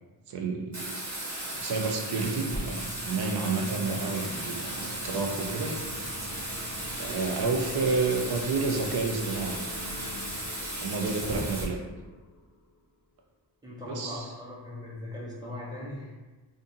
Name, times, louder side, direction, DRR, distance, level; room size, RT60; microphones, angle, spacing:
voice 1, 0.3-1.0 1.4-5.7 7.0-9.7 10.8-11.8 13.9-14.3, right 4 dB, 60° right, 3 dB, 0.5 m, -30 dB
Bathtub (filling or washing), 0.7-11.6, right 1 dB, 40° right, 1.1 m, -36 dB
sound 1, 2.8-12.8, left 1 dB, 45° left, 0.6 m, -46 dB
sound 2, 2.8-10.5, right 2 dB, 85° right, 1.1 m, -46 dB
voice 2, 13.6-16.3, left 1 dB, 10° right, -6 dB, 0.9 m, -39 dB
2.6 x 2.5 x 2.6 m, 1.2 s
cardioid pair, 70°, 44 cm